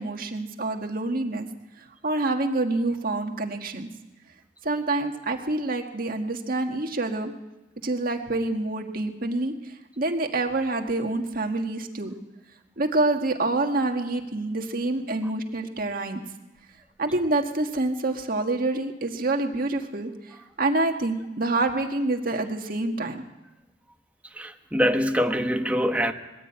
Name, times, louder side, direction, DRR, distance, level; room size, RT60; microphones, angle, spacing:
voice 1, 0.0-1.5 2.0-3.9 4.6-7.3 7.8-9.5 10.0-12.1 12.8-16.2 17.0-20.1 20.6-23.2, right 2 dB, 50° right, 4 dB, 1.7 m, -27 dB
voice 2, 24.4-26.1, equal, 10° right, 5 dB, 1.1 m, -24 dB
21.5 x 15.0 x 8.7 m, 1.1 s
head